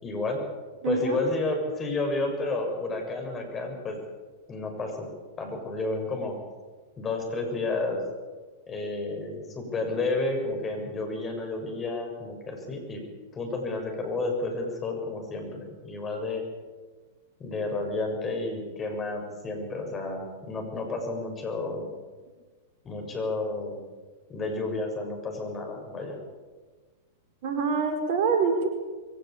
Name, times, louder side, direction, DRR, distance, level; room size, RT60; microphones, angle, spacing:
voice 1, 0.0-0.4 0.8-4.0 4.5-5.1 5.4-6.4 7.0-8.0 8.7-13.0 13.3-16.4 17.4-21.9 22.8-23.8 24.3-26.2, left 2 dB, 25° left, 3 dB, 6.8 m, -31 dB
voice 2, 0.8-1.2 27.4-28.7, right 5 dB, 50° right, 5 dB, 5.1 m, -25 dB
23.0 x 17.5 x 8.8 m, 1.3 s
figure-of-eight pair, 95°, 0 cm